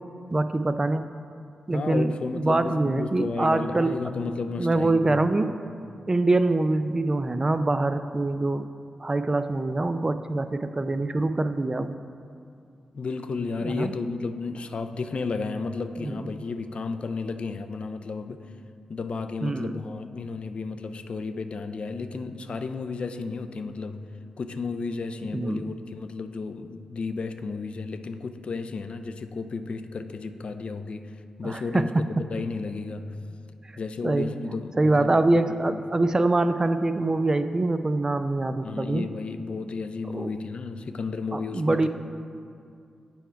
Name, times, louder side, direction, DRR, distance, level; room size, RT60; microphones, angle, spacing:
voice 1, 0.3-1.1 1.7-3.9 4.2-4.3 4.6-5.6 6.1-8.7 9.0-12.0 13.6-13.9 16.0-16.2 19.4-19.8 25.3-25.7 31.4-32.1 34.0-34.3 34.8-39.1 40.1-40.3 41.3-41.9, right 2 dB, 30° right, 10 dB, 0.3 m, -24 dB
voice 2, 1.7-5.3 12.9-18.5 18.9-24.0 24.4-33.2 33.8-35.2 38.6-41.9, left 4 dB, 60° left, 9 dB, 0.4 m, -33 dB
7.0 x 4.5 x 4.5 m, 2.4 s
cardioid pair, 50°, 2 cm